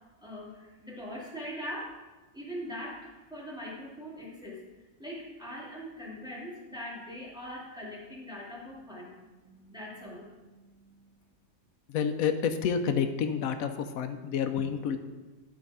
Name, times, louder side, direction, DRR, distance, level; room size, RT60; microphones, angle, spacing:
voice 1, 0.2-1.9 2.3-4.6 5.0-11.1, equal, 5° right, -6 dB, 2.1 m, -42 dB
voice 2, 11.9-15.0, left 7 dB, 90° left, 8 dB, 1.1 m, -29 dB
11.5 x 3.9 x 4.8 m, 1.2 s
omnidirectional pair, 1.4 m